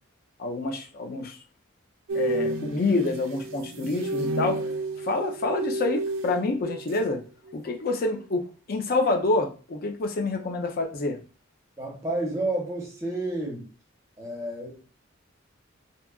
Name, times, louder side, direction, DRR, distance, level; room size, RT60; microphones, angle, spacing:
voice 1, 0.4-1.4 2.1-4.6 5.0-7.2 7.5-11.2, left 2 dB, 45° left, 3 dB, 0.4 m, -27 dB
sound 1, 2.1-7.2 7.5-7.8, right 2 dB, 70° right, 0.3 m, -31 dB
voice 2, 11.8-13.7 14.2-14.8, right 2 dB, 15° right, -1 dB, 0.8 m, -30 dB
2.7 x 2.3 x 2.3 m, 0.36 s
head